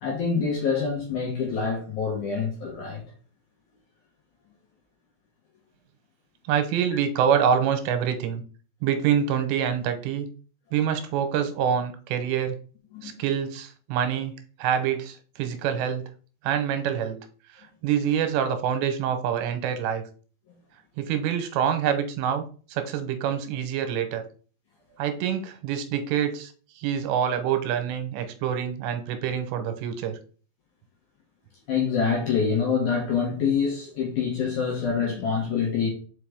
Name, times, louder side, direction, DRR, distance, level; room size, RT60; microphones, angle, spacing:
voice 1, 0.0-3.0 12.9-13.1 31.7-35.9, left 6 dB, 65° left, 2.1 m, -26 dB
voice 2, 6.5-8.4 8.8-10.3 10.7-12.6 13.0-14.3 14.6-16.0 16.4-17.2 17.8-20.0 21.0-22.4 22.7-24.2 25.0-26.5 26.8-30.2, right 8 dB, 85° right, 3.0 m, -26 dB
5.6 x 5.1 x 3.4 m
omnidirectional pair, 5.1 m